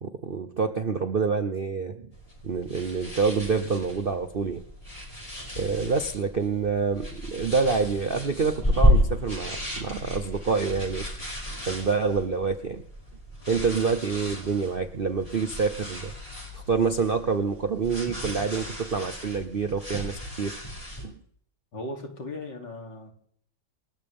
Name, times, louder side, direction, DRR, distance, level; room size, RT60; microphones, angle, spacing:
voice 1, 0.0-2.1 2.4-4.6 5.6-11.1 11.6-12.8 13.5-16.1 16.5-20.6 21.0-21.2, right 5 dB, 45° right, 8 dB, 0.7 m, -27 dB
sound 1, 2.1-21.0, equal, 15° left, 6.2 m, -32 dB
voice 2, 21.7-23.1, left 2 dB, 70° left, 2 dB, 3.8 m, -37 dB
28.0 x 13.5 x 3.7 m, 0.64 s
omnidirectional pair, 2.0 m